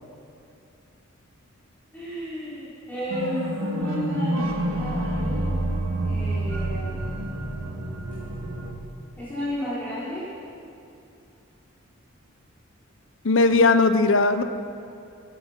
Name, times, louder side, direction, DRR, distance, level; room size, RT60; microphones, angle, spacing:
voice 1, 1.9-3.4 3.8-5.5 6.0-7.1 9.2-10.3, equal, 10° left, -13 dB, 4.6 m, -33 dB
sound 1, 3.1-8.7, right 1 dB, 80° right, 1.9 m, -28 dB
voice 2, 13.2-14.4, left 3 dB, 65° left, 10 dB, 0.8 m, -18 dB
16.5 x 11.0 x 6.0 m, 2.7 s
head